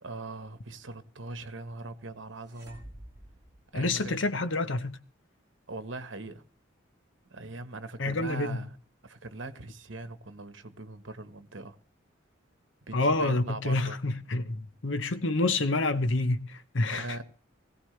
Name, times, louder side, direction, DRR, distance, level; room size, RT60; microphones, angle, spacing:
voice 1, 0.0-2.8 3.7-4.2 5.7-6.4 7.3-8.8 9.0-11.8 12.9-14.0 16.9-17.2, right 2 dB, 70° right, 1.3 m, -41 dB
sound 1, 2.4-4.4, right 1 dB, 15° right, 5.1 m, -50 dB
voice 2, 3.7-5.0 8.0-8.6 12.9-17.2, left 2 dB, 70° left, 1.0 m, -28 dB
20.5 x 15.5 x 3.3 m
head